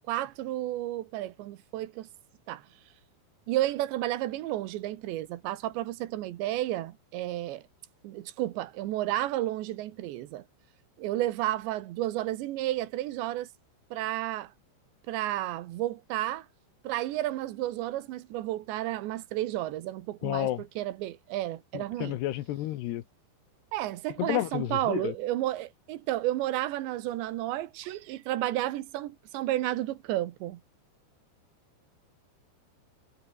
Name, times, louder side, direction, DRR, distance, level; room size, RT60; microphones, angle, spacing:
voice 1, 0.1-2.1 2.5-2.6 3.5-7.6 8.0-10.4 11.0-13.5 13.9-14.5 15.1-16.5 16.9-22.2 23.7-30.6, right 15 dB, 80° right, 3.5 m, -32 dB
voice 2, 20.2-20.6 21.7-23.0 24.2-25.1, left 14 dB, 75° left, 3.1 m, -31 dB
omnidirectional pair, 5.1 m